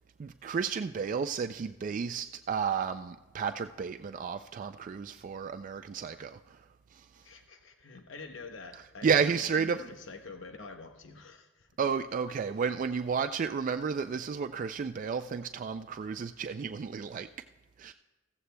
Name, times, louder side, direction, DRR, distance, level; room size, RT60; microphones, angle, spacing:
voice 1, 0.2-6.6 6.9-7.0 9.0-9.8 11.8-17.3 17.8-17.9, right 6 dB, 40° right, 8 dB, 0.3 m, -32 dB
voice 2, 7.2-11.7, left 4 dB, 75° left, 5 dB, 0.8 m, -46 dB
15.5 x 14.5 x 2.2 m, 1.2 s
head